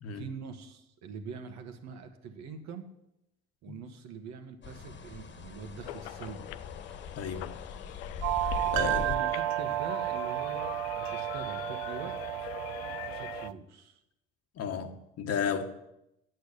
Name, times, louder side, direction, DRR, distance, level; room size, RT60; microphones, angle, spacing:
voice 1, 0.1-2.9 3.6-6.5 8.5-12.5 13.1-14.0, right 5 dB, 65° right, 1.6 m, -44 dB
sound 1, 4.6-9.2, left 6 dB, 40° left, 1.5 m, -41 dB
sound 2, 5.8-13.5, left 15 dB, 85° left, 0.5 m, -43 dB
voice 2, 7.2-7.5 8.7-9.0 14.6-15.6, left 7 dB, 55° left, 1.4 m, -33 dB
sound 3, 8.2-13.5, right 15 dB, 80° right, 0.6 m, -32 dB
9.3 x 6.9 x 8.5 m
hypercardioid pair, 70°, 29 cm